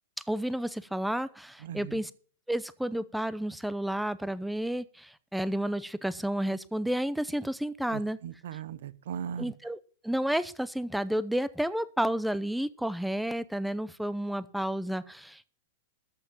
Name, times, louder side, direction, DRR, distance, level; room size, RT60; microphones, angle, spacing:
voice 1, 0.2-2.1 2.5-8.2 9.4-15.6, right 1 dB, ahead, 16 dB, 0.7 m, -31 dB
voice 2, 1.6-2.0 7.9-9.5, right 8 dB, 75° right, 18 dB, 0.9 m, -38 dB
13.5 x 5.9 x 7.4 m, 0.42 s
hypercardioid pair, 130°, 0 cm